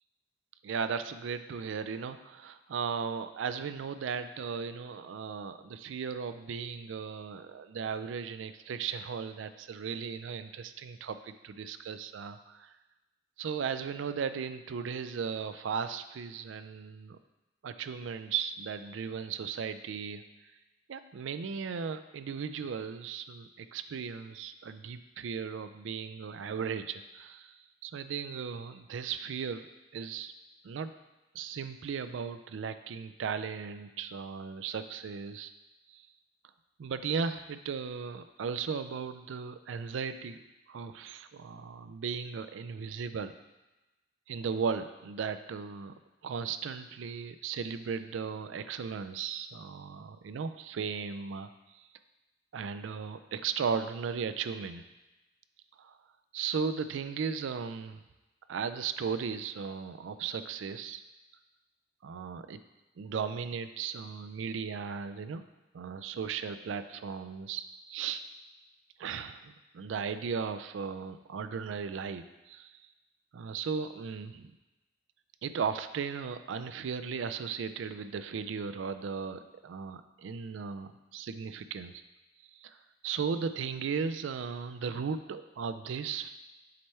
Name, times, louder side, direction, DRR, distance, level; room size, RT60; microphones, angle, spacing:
voice 1, 0.6-12.6 13.4-17.2 17.6-20.2 20.9-29.7 29.9-30.3 30.6-30.9 31.3-35.5 35.9-36.0 36.8-43.3 44.3-45.9 46.2-51.5 51.8-51.9 52.5-54.8 55.8-56.0 56.3-58.0 58.5-61.0 62.0-62.6 63.0-65.4 65.7-68.2 69.0-72.8 73.3-74.5 75.4-81.9 82.5-82.8 83.0-86.4, right 6 dB, 80° right, 11 dB, 0.4 m, -36 dB
7.7 x 3.3 x 4.3 m, 1.1 s
head